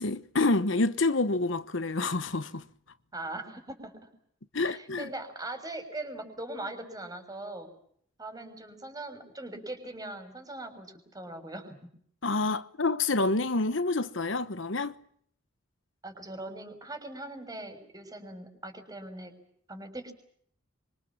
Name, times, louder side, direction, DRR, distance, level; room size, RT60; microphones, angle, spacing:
voice 1, 0.0-2.6 4.5-5.1 12.2-15.0, left 3 dB, 65° left, 1.1 m, -28 dB
voice 2, 3.1-4.1 4.6-7.7 8.2-11.8 16.0-19.3 19.7-20.1, right 2 dB, 20° right, 6.3 m, -40 dB
26.0 x 25.0 x 7.4 m
head